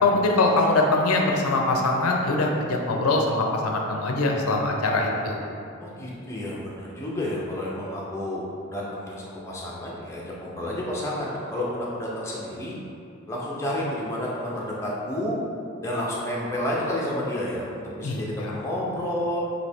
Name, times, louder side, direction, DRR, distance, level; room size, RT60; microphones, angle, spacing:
voice 1, 0.0-5.4 18.0-18.5, left 2 dB, 85° left, 1 dB, 0.5 m, -23 dB
voice 2, 5.8-8.4 8.7-12.8 13.3-15.4 15.8-19.4, left 1 dB, 15° left, -5 dB, 0.4 m, -30 dB
3.2 x 2.7 x 4.2 m, 2.6 s
head